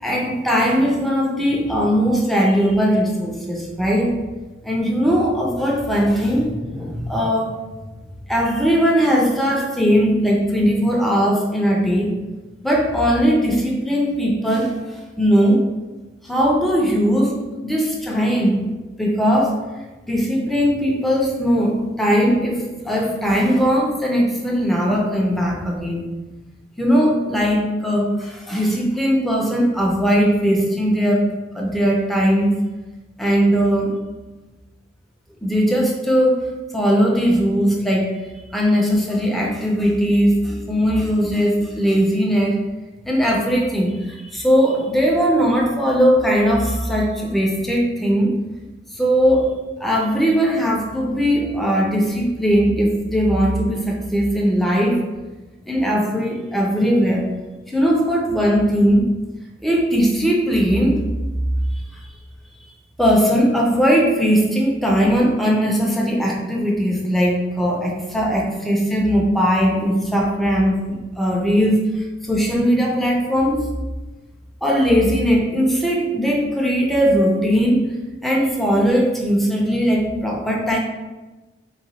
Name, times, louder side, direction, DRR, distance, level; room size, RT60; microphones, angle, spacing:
voice 1, 0.0-4.1 4.6-7.6 8.3-12.1 12.6-15.7 16.2-18.6 19.0-19.6 20.1-26.0 26.8-31.3 31.5-32.6 33.2-34.0 35.4-38.1 38.5-42.6 43.1-48.3 48.9-55.0 55.7-57.2 57.7-59.1 59.6-61.0 61.9-62.0 63.0-73.7 74.6-77.9 78.2-80.8, equal, ahead, -2 dB, 0.5 m, -19 dB
3.9 x 2.2 x 4.1 m, 1.2 s
head